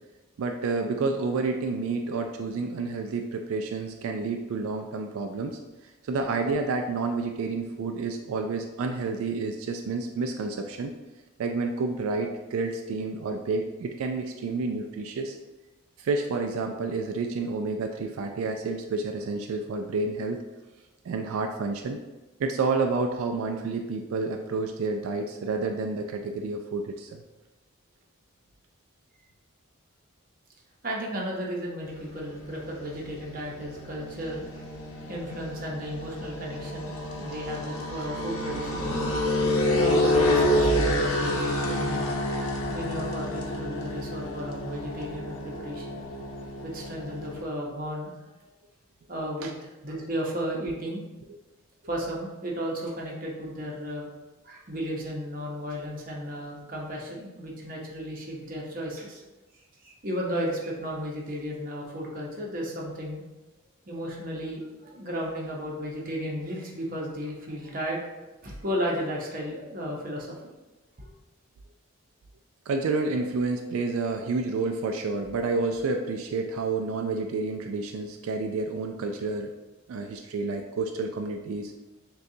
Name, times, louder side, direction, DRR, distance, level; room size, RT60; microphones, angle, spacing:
voice 1, 0.4-5.6 6.0-10.9 11.4-15.4 16.0-20.4 21.0-22.0 22.4-27.2 49.4-49.5 72.7-79.5 79.9-81.7, right 3 dB, 85° right, 4 dB, 0.3 m, -29 dB
voice 2, 30.8-34.6 35.1-36.9 37.2-38.7 39.8-42.1 42.7-46.0 46.6-48.5 49.1-51.0 51.8-54.0 54.4-59.2 59.8-63.2 63.9-68.1 68.4-70.3 71.0-71.1, equal, 40° right, -2 dB, 0.8 m, -34 dB
sound 1, 31.8-47.4, left 1 dB, 85° left, 0.7 m, -29 dB
6.3 x 2.3 x 2.7 m, 1.1 s
head